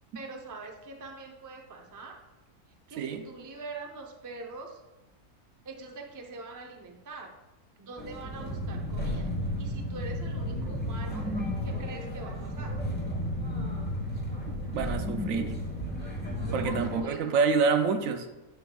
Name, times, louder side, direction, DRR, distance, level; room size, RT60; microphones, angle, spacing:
voice 1, 0.1-2.2 2.9-4.8 5.6-7.4 7.8-9.3 9.6-11.3 11.6-12.8 16.4-17.5, right 3 dB, 30° right, 2 dB, 0.3 m, -43 dB
sound 1, 8.0-17.0, equal, 10° left, 1.0 m, -33 dB
voice 2, 14.5-15.6 16.5-18.3, right 5 dB, 70° right, 8 dB, 1.0 m, -27 dB
10.5 x 6.7 x 2.3 m, 1.1 s
omnidirectional pair, 1.6 m